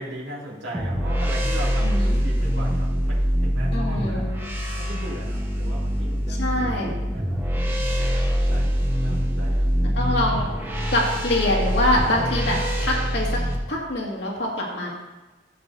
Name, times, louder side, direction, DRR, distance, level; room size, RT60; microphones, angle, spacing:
voice 1, 0.0-4.3 4.8-8.7 9.0-9.9 10.4-10.5, right 1 dB, 75° right, -5 dB, 2.5 m, -38 dB
sound 1, 0.7-13.6, equal, 10° right, 1.1 m, -24 dB
voice 2, 1.8-2.2 3.7-4.3 6.3-7.0 10.0-10.5 10.9-13.3 13.7-14.9, left 1 dB, 70° left, -3 dB, 2.2 m, -24 dB
15.0 x 7.8 x 2.7 m, 1.1 s
head